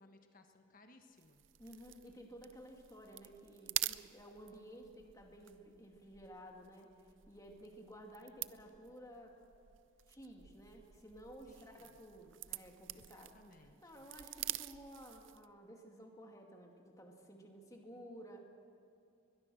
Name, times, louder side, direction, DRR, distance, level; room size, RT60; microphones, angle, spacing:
voice 1, 0.0-1.4 11.4-12.0 12.9-13.9, left 2 dB, 45° left, 5 dB, 1.4 m, -62 dB
sound 1, 1.2-15.5, right 15 dB, 75° right, 0.5 m, -47 dB
voice 2, 1.6-6.9 7.3-9.4 10.1-13.3 13.8-18.5, equal, 15° left, 1 dB, 2.4 m, -54 dB
22.0 x 21.5 x 6.4 m, 2.5 s
head